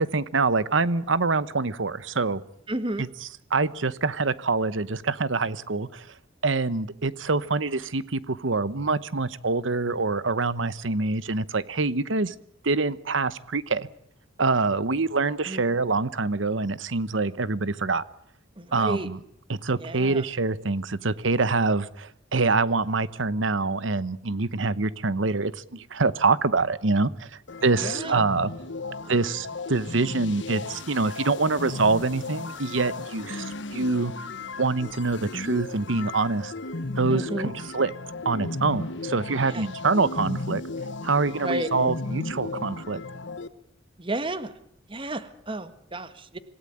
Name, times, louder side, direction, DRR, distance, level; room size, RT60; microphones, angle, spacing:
voice 1, 0.0-2.4 3.0-3.1 3.5-6.1 6.4-12.3 12.6-13.9 14.4-18.0 18.7-19.2 19.5-27.3 27.6-28.5 29.1-34.1 34.6-36.5 37.0-37.9 38.2-40.6 41.0-43.0, right 3 dB, 75° right, 17 dB, 1.0 m, -25 dB
voice 2, 2.7-3.1 15.4-15.6 18.6-19.1 19.8-20.3 27.7-28.2 29.0-29.2 37.1-37.5 39.4-39.6 41.4-41.7 44.0-44.5 44.9-46.4, right 2 dB, 25° right, 11 dB, 1.6 m, -32 dB
sound 1, 27.5-43.5, left 3 dB, 65° left, 1.3 m, -35 dB
26.5 x 17.0 x 8.8 m, 0.71 s
head